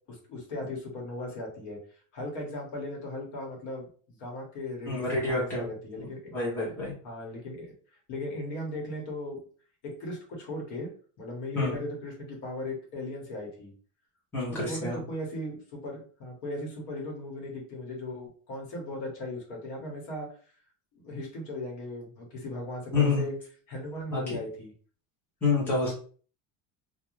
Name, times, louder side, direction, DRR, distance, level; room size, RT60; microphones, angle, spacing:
voice 1, 0.1-6.4 7.0-7.7 8.1-9.4 9.8-10.9 11.2-13.7 14.3-20.4 20.9-23.3 23.7-24.7, left 1 dB, 60° left, 0 dB, 1.1 m, -38 dB
voice 2, 4.9-5.7 6.0-6.9 11.5-11.8 14.3-15.0 22.9-23.2 24.1-24.4 25.4-25.9, left 3 dB, 5° left, -7 dB, 0.7 m, -28 dB
2.4 x 2.2 x 3.0 m, 0.43 s
cardioid pair, 175°, 44 cm